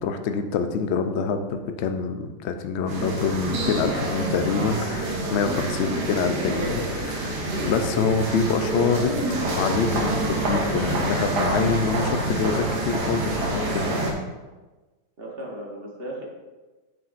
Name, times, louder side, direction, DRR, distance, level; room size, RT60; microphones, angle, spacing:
voice 1, 0.0-13.9, left 5 dB, 70° left, 7 dB, 0.6 m, -26 dB
sound 1, 2.9-14.1, right 1 dB, 80° right, 1.7 m, -27 dB
voice 2, 5.5-5.8 6.1-6.6 7.2-7.4 15.2-16.2, equal, 40° right, -2 dB, 1.2 m, -37 dB
7.1 x 6.4 x 2.5 m, 1.2 s
omnidirectional pair, 1.7 m